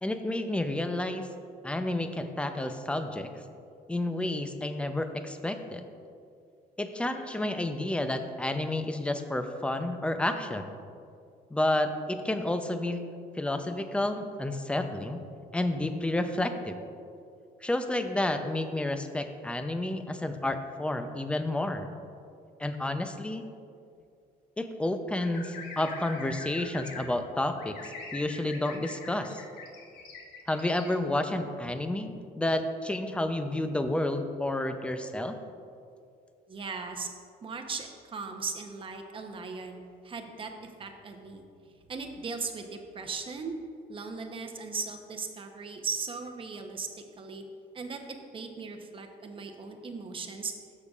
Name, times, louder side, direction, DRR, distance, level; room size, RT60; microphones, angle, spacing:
voice 1, 0.0-1.3 1.6-3.3 3.9-5.9 6.8-10.7 11.5-13.1 13.3-15.2 15.5-16.8 17.6-21.9 22.6-23.4 24.6-29.4 30.5-35.4, left 1 dB, 5° left, 8 dB, 0.5 m, -30 dB
sound 1, 25.2-27.1 27.6-30.9, left 4 dB, 70° left, 1.2 m, -43 dB
voice 2, 36.5-37.1 37.4-39.8 40.0-40.5 40.8-41.4 41.9-43.5 43.9-46.9 47.2-47.4 47.7-48.0 48.3-50.5, right 4 dB, 30° right, 4 dB, 0.9 m, -38 dB
13.5 x 6.5 x 2.4 m, 2.4 s
cardioid pair, 110°, 17 cm